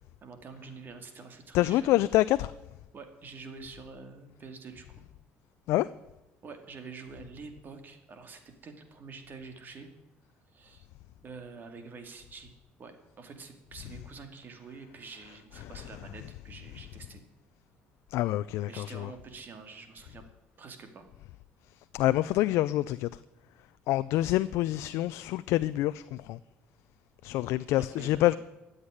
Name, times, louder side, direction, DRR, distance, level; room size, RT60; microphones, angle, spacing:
voice 1, 0.2-2.0 2.9-4.9 6.4-9.9 10.5-10.9 11.2-12.5 12.8-17.2 18.7-20.2 20.6-21.1 27.8-28.4, right 4 dB, 45° right, 2.5 m, -47 dB
voice 2, 1.5-2.5 5.7-5.9 18.1-19.1 21.9-23.1 23.9-26.4 27.2-28.3, left 16 dB, 80° left, 0.4 m, -26 dB
13.0 x 8.1 x 9.9 m
cardioid pair, 105°, 5 cm